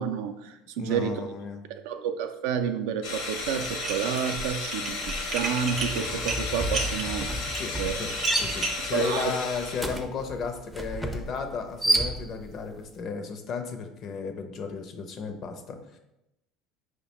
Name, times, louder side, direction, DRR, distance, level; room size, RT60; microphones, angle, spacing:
voice 1, 0.0-1.1 1.9-5.0 5.3-7.3 7.8-8.0 8.9-9.3, right 8 dB, 75° right, 7 dB, 0.3 m, -29 dB
voice 2, 0.8-1.6 7.5-16.0, left 5 dB, 50° left, 6 dB, 0.5 m, -34 dB
sound 1, 3.0-10.0, left 3 dB, 80° left, 0.9 m, -34 dB
sound 2, 3.6-3.9 4.2-12.6, right 1 dB, 5° right, 0.4 m, -32 dB
Dishes pots and pans, 3.7-4.3 4.6-8.9, right 3 dB, 45° right, 0.7 m, -33 dB
4.7 x 2.1 x 2.9 m, 0.89 s
supercardioid pair, 85°, 0 cm